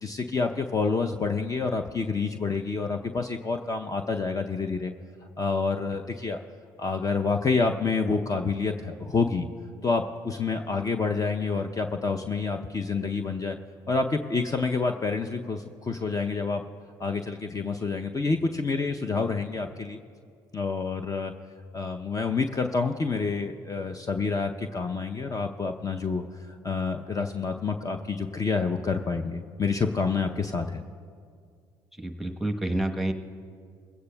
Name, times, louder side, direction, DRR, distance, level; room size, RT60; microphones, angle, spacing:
voice 1, 0.0-4.9 5.4-6.4 6.8-9.5 9.8-13.6 13.9-16.6 17.0-20.0 20.5-21.3 21.7-30.8, left 4 dB, 30° left, 6 dB, 0.6 m, -28 dB
voice 2, 32.0-33.1, right 1 dB, ahead, 5 dB, 1.1 m, -28 dB
21.0 x 16.0 x 2.3 m, 2.2 s
hypercardioid pair, 55°, 12 cm